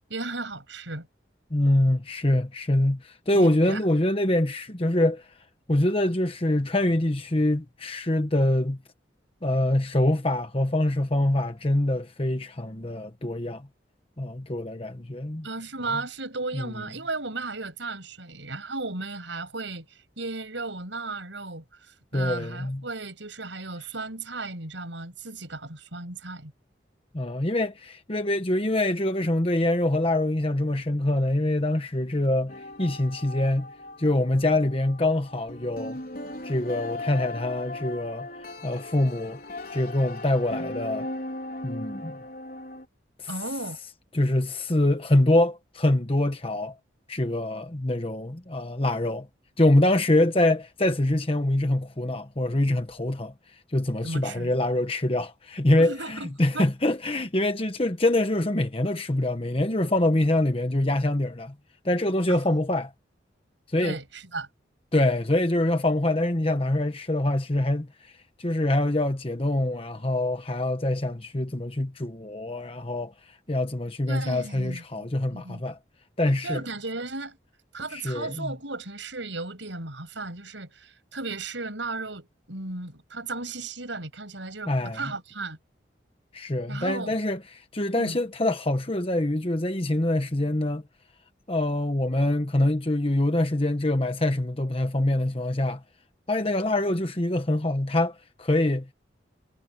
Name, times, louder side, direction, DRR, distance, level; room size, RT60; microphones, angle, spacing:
voice 1, 0.1-1.1 3.3-3.8 15.4-26.5 43.3-43.8 54.0-54.5 55.8-56.7 62.3-62.4 63.8-64.5 74.1-75.6 76.4-77.4 77.7-85.6 86.7-87.2 88.0-88.2, right 3 dB, 90° right, 7.1 m, -35 dB
voice 2, 1.5-5.3 5.7-8.8 9.4-13.7 14.2-15.5 16.5-16.7 22.1-22.8 27.1-33.7 34.0-36.0 36.4-38.3 38.6-39.4 39.7-41.1 41.6-42.2 43.2-43.3 44.1-46.8 47.1-49.3 49.6-53.3 53.7-61.5 61.8-62.9 63.7-64.0 64.9-68.1 68.4-73.1 73.5-75.8 76.2-76.6 77.9-78.5 84.7-85.0 86.3-90.8 91.5-95.8 96.3-98.9, left 1 dB, 30° left, 1.2 m, -25 dB
sound 1, 32.5-42.9, left 2 dB, 50° left, 4.8 m, -38 dB
head